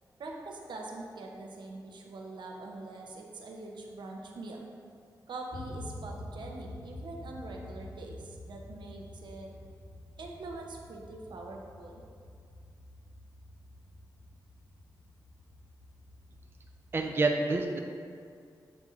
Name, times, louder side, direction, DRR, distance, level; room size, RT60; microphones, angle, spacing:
voice 1, 0.2-4.7 5.3-9.5 10.2-12.0, right 2 dB, 80° right, 0 dB, 0.6 m, -43 dB
sound 1, 5.5-17.1, left 1 dB, 40° left, 0.5 m, -48 dB
voice 2, 16.9-17.8, right 3 dB, 30° right, 2 dB, 0.3 m, -27 dB
7.2 x 2.9 x 2.4 m, 2.2 s
cardioid pair, 80°, 8 cm